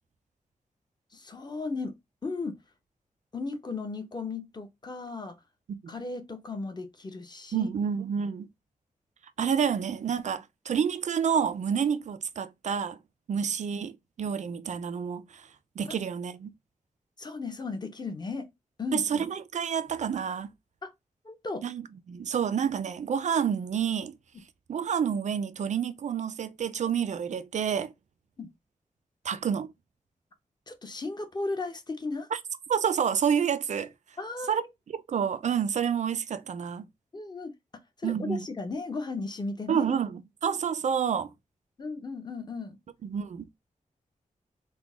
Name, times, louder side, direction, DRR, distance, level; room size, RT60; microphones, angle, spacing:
voice 1, 1.1-1.9 2.2-2.6 3.3-5.3 5.9-7.7 15.9-16.0 17.2-18.5 18.8-19.2 20.8-20.9 21.2-21.6 28.4-28.5 30.7-32.3 34.2-34.7 37.1-37.5 38.0-39.9 41.8-42.8, left 3 dB, 30° left, 0.9 m, -35 dB
voice 2, 7.5-8.5 9.4-13.0 13.3-15.5 15.8-16.5 18.9-20.5 21.6-24.1 24.7-27.9 29.2-29.7 32.3-32.4 32.7-33.9 34.5-34.6 35.1-36.9 38.0-38.4 39.7-40.1 40.4-41.3 43.0-43.6, right 7 dB, 60° right, 0.4 m, -29 dB
3.8 x 2.2 x 3.5 m
wide cardioid pair, 110°, 14 cm